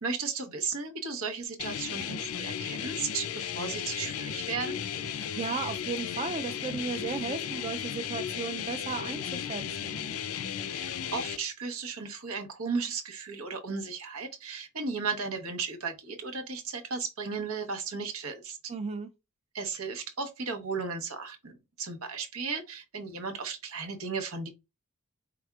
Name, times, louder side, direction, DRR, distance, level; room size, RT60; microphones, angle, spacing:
voice 1, 0.0-4.8 10.7-18.7 19.5-24.5, right 5 dB, 90° right, 1.0 m, -35 dB
sound 1, 1.6-11.4, left 8 dB, 85° left, 0.5 m, -35 dB
voice 2, 5.2-10.0 18.7-19.1, right 5 dB, 30° right, 0.3 m, -35 dB
4.9 x 3.4 x 2.3 m
head